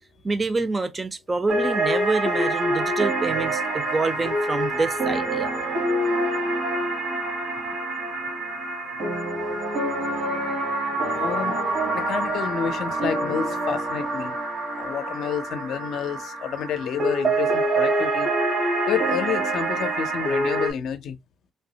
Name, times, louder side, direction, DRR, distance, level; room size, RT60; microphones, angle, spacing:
voice 1, 0.2-5.5, right 3 dB, 30° right, 0.5 m, -27 dB
sound 1, 1.5-20.7, right 2 dB, 60° right, 1.3 m, -26 dB
voice 2, 11.0-11.6 11.9-14.3 14.7-18.3 18.9-21.2, left 8 dB, 75° left, 0.5 m, -29 dB
3.3 x 2.0 x 2.6 m
cardioid pair, 90°, 0 cm